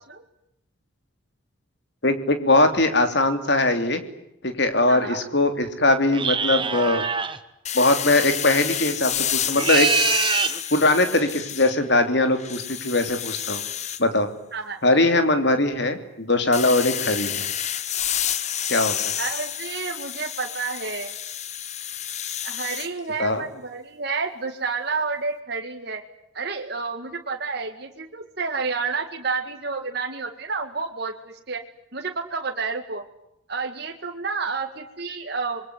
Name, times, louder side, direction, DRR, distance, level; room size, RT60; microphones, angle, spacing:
voice 1, 2.0-4.0 4.4-7.0 7.7-10.2 10.7-13.6 14.0-14.3 14.8-17.5 18.7-18.9 23.2-23.4, left 2 dB, 55° left, 8 dB, 3.1 m, -21 dB
voice 2, 4.9-5.3 14.5-14.8 19.2-21.1 22.4-26.0 26.3-31.6 31.9-33.0 33.5-35.6, right 4 dB, 50° right, 2 dB, 2.0 m, -30 dB
sound 1, 6.1-7.4 9.4-10.6, right 5 dB, 25° right, 1.4 m, -23 dB
sound 2, 7.7-11.9 12.3-14.0 16.5-22.9, left 10 dB, 35° left, 1.0 m, -29 dB
26.5 x 22.5 x 10.0 m, 0.83 s
head